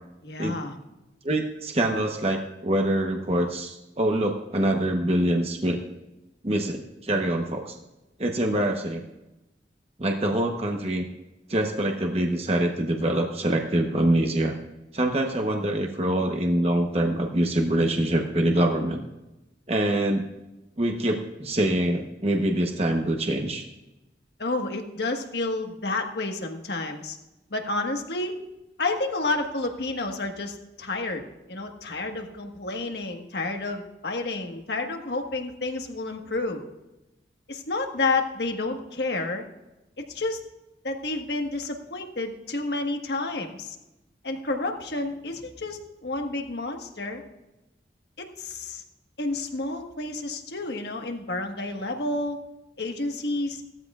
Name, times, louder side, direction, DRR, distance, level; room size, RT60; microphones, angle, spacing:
voice 1, 0.2-0.7 24.4-27.2 27.5-28.3 28.8-36.6 37.5-39.4 40.1-40.4 40.8-43.8 44.2-47.2 48.2-48.8 49.2-52.4 52.8-53.6, left 2 dB, 65° left, 4 dB, 1.5 m, -30 dB
voice 2, 1.2-5.8 6.4-7.8 8.2-9.0 10.0-11.0 11.5-14.5 14.9-19.0 19.7-20.2 20.8-23.6, right 1 dB, 35° right, 2 dB, 0.9 m, -25 dB
17.5 x 13.5 x 2.4 m, 0.99 s
head